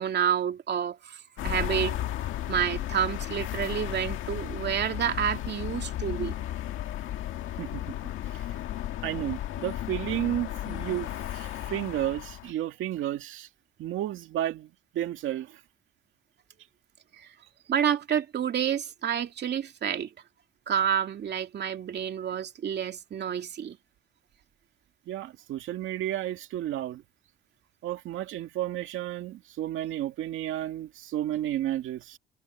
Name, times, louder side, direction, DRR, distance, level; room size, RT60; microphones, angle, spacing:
voice 1, 0.0-2.0 2.5-6.3 17.2-17.3 17.7-20.1 20.7-23.8, right 9 dB, 60° right, 2.6 m, -29 dB
sound 1, 1.4-12.5, left 13 dB, 85° left, 1.8 m, -34 dB
voice 2, 7.6-8.5 9.0-13.5 13.8-15.6 25.1-27.0 27.8-32.2, right 13 dB, 85° right, 2.1 m, -32 dB
cardioid pair, 90°, 20 cm